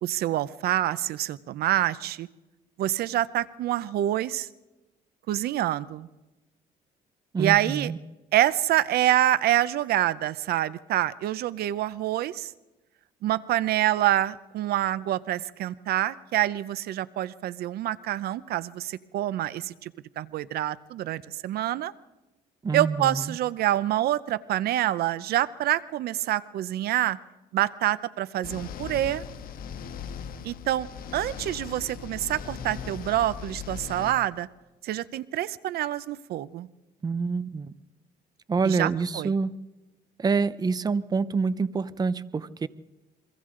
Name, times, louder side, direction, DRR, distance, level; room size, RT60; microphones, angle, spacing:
voice 1, 0.0-2.3 2.8-4.5 5.3-6.1 7.4-7.9 8.3-12.5 13.2-21.9 22.7-27.2 27.5-29.2 30.4-30.9 31.1-34.5 34.8-36.7 38.6-39.3, right 13 dB, 70° right, 17 dB, 0.7 m, -26 dB
voice 2, 7.3-8.0 22.6-23.4 37.0-37.7 38.5-39.6 40.2-42.7, right 4 dB, 25° right, 16 dB, 0.8 m, -27 dB
sound 1, 28.4-34.1, left 7 dB, 60° left, 1.5 m, -39 dB
28.5 x 24.0 x 3.8 m, 1.0 s
cardioid pair, 110°, 17 cm